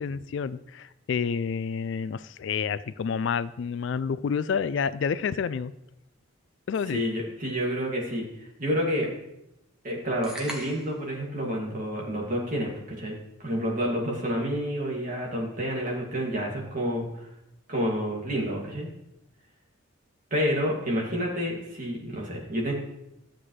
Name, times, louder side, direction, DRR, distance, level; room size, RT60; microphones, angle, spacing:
voice 1, 0.0-5.7 6.7-7.0, left 6 dB, 60° left, 16 dB, 0.3 m, -29 dB
voice 2, 6.9-9.1 9.8-17.1 17.7-18.9 20.3-22.7, equal, 40° right, -2 dB, 2.3 m, -29 dB
sound 1, 10.2-11.1, equal, 5° right, 1.0 m, -39 dB
13.0 x 7.5 x 3.2 m, 0.84 s
head